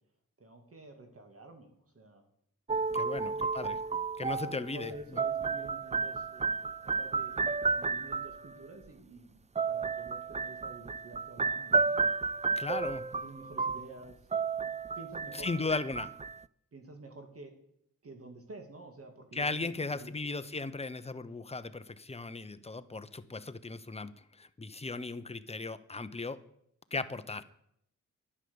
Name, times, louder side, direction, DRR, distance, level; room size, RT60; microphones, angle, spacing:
voice 1, 0.4-2.2 2.9-3.7 4.4-12.0 13.2-14.6 15.0-15.7 16.7-17.5 18.0-19.7 20.0-20.1, right 2 dB, 45° right, 4 dB, 2.4 m, -50 dB
sound 1, 2.7-8.5 9.5-16.4, right 4 dB, 20° right, 0.4 m, -32 dB
voice 2, 2.9-3.8 4.2-5.2 12.6-13.1 15.3-16.1 19.3-26.4 26.9-27.4, left 3 dB, 20° left, 11 dB, 0.9 m, -37 dB
11.0 x 10.0 x 7.1 m, 0.74 s
cardioid pair, 70°, 32 cm